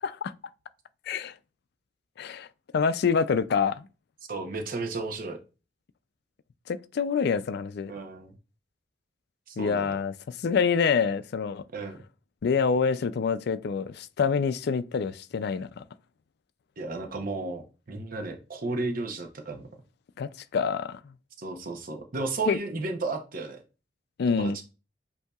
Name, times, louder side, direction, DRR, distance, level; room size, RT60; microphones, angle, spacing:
voice 1, 0.0-0.3 1.1-1.3 2.2-2.5 2.7-3.9 6.7-7.9 9.6-11.6 12.4-15.8 20.2-21.1 22.5-22.6 24.2-24.6, left 5 dB, 60° left, 0.4 m, -26 dB
voice 2, 4.3-5.4 7.9-8.3 9.5-9.9 11.7-12.0 16.8-19.6 21.4-23.6 24.3-24.6, right 3 dB, 50° right, 0.8 m, -33 dB
8.0 x 2.7 x 2.4 m
head